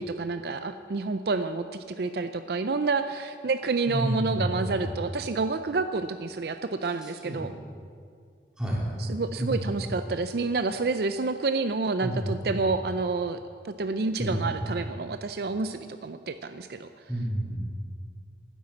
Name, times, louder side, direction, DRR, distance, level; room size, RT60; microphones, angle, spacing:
voice 1, 0.0-7.5 9.0-13.4 13.6-16.9, right 3 dB, 60° right, 10 dB, 0.5 m, -29 dB
voice 2, 3.9-4.9 7.0-7.5 8.6-8.8 9.4-9.9 12.0-12.6 14.2-14.5 17.1-17.6, right 1 dB, 5° right, -5 dB, 3.5 m, -30 dB
12.5 x 10.0 x 8.4 m, 2.2 s
head